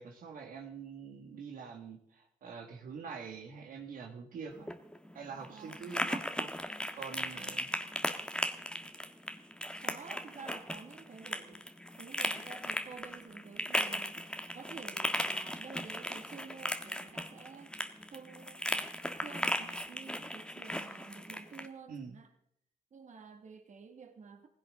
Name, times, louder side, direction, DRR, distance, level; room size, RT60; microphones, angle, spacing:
voice 1, 0.0-4.7 5.1-7.7 21.9-22.1, right 5 dB, 80° right, 2 dB, 2.0 m, -45 dB
sound 1, 4.5-21.7, left 1 dB, 5° left, 1.5 m, -37 dB
voice 2, 5.5-5.8 9.8-11.6 12.0-14.2 14.5-17.7 18.1-18.7 19.2-22.3 22.9-24.5, right 5 dB, 60° right, 5 dB, 2.1 m, -50 dB
17.0 x 16.0 x 3.8 m, 0.68 s
cardioid pair, 65°, 14 cm